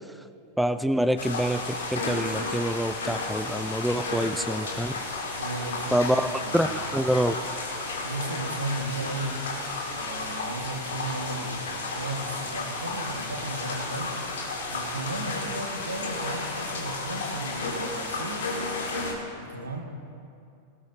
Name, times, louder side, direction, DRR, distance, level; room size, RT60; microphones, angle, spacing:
voice 1, 0.6-4.9 5.9-7.3, equal, ahead, 11 dB, 0.4 m, -26 dB
sound 1, 1.2-19.1, left 3 dB, 65° left, 2.3 m, -33 dB
voice 2, 5.4-6.9 7.9-9.5 9.9-14.2 14.7-18.6 19.4-19.8, right 2 dB, 80° right, 2 dB, 1.7 m, -35 dB
18.5 x 18.0 x 2.8 m, 2.5 s
figure-of-eight pair, 90°, 0 cm